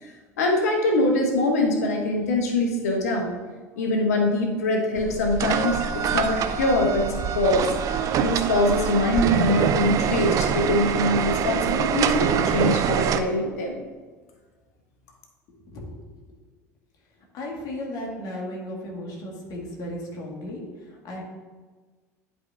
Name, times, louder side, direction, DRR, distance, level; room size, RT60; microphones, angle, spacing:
voice 1, 0.4-3.4 3.8-7.7 8.0-13.8, left 2 dB, 65° left, 2 dB, 1.1 m, -23 dB
sound 1, 5.0-13.2, right 8 dB, 40° right, 0.5 m, -25 dB
voice 2, 15.5-16.0 16.3-16.4 17.3-21.2, left 1 dB, 45° left, -2 dB, 2.0 m, -35 dB
11.0 x 4.7 x 2.7 m, 1.4 s
figure-of-eight pair, 65°, 9 cm